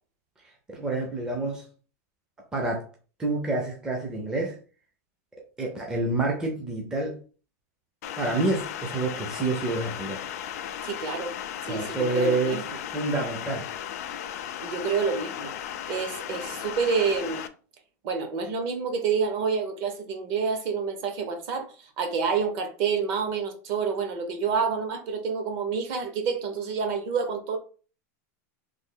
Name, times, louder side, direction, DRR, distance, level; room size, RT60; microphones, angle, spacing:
voice 1, 0.7-1.6 2.5-2.8 3.2-4.6 5.6-7.2 8.2-10.2 11.7-12.6 12.9-13.7, right 2 dB, 5° right, 0.4 m, -28 dB
sound 1, 8.0-17.5, left 10 dB, 60° left, 0.4 m, -36 dB
voice 2, 10.8-11.3 11.6-12.8 14.6-15.5 15.9-17.4 18.0-27.6, right 5 dB, 40° right, 0.7 m, -28 dB
3.1 x 2.1 x 3.7 m
supercardioid pair, 170°, 9 cm